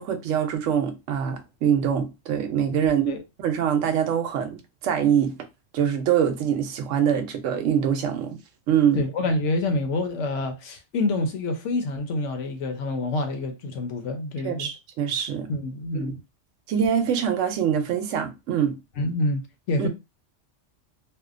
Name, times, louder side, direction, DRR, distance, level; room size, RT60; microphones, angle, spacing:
voice 1, 0.0-3.1 3.4-5.3 5.7-8.4 8.7-9.0 14.4-15.5 15.9-16.1 16.7-18.8 19.8-19.9, right 8 dB, 80° right, 0.9 m, -24 dB
voice 2, 9.0-14.7 15.5-16.2 19.0-19.9, left 2 dB, 75° left, 1.0 m, -27 dB
2.6 x 2.1 x 2.4 m
omnidirectional pair, 1.3 m